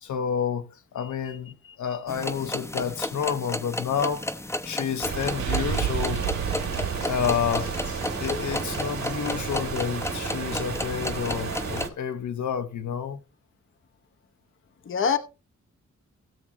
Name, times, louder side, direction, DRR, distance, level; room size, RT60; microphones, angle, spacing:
voice 1, 0.0-4.3 4.6-13.2, left 8 dB, 75° left, 1.2 m, -30 dB
voice 2, 1.0-1.4 1.6-1.8 8.3-8.4 14.9-15.2, left 6 dB, 45° left, 0.9 m, -27 dB
sound 1, 2.1-11.9, left 1 dB, 10° left, 0.8 m, -33 dB
sound 2, 5.0-11.9, right 5 dB, 65° right, 3.1 m, -33 dB
sound 3, 5.4-9.1, right 10 dB, 90° right, 0.8 m, -32 dB
17.0 x 7.7 x 3.0 m
wide cardioid pair, 120°, 30 cm